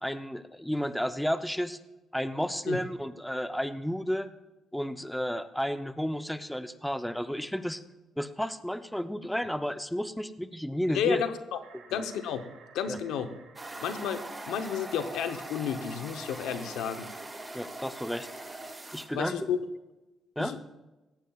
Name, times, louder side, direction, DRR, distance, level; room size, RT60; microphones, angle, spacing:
voice 1, 0.0-1.8 2.1-4.3 4.7-7.8 8.2-11.2 11.9-12.0 12.9-13.0 17.5-18.6 18.9-19.4 20.4-20.6, equal, ahead, 10 dB, 0.7 m, -32 dB
voice 2, 10.9-11.6 11.9-12.4 12.7-13.3 13.8-17.1 19.1-19.6 20.4-20.6, left 8 dB, 90° left, 9 dB, 0.8 m, -32 dB
ice cave, 11.6-17.3, right 5 dB, 85° right, 2.4 m, -58 dB
sound 1, 13.6-19.1, right 2 dB, 20° right, 1.9 m, -42 dB
17.0 x 15.0 x 2.4 m, 1.1 s
cardioid pair, 90°, 0 cm